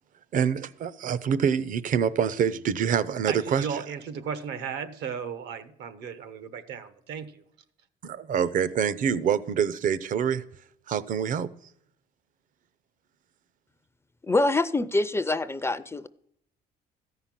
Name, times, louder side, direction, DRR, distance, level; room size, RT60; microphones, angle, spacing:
voice 1, 0.3-3.7 8.0-10.4 10.9-11.5, right 7 dB, 50° right, 0.6 m, -26 dB
voice 2, 3.3-7.4, right 7 dB, 75° right, 1.1 m, -35 dB
voice 3, 14.2-16.1, left 2 dB, 15° left, 0.4 m, -25 dB
13.5 x 5.7 x 7.4 m
cardioid pair, 110°, 17 cm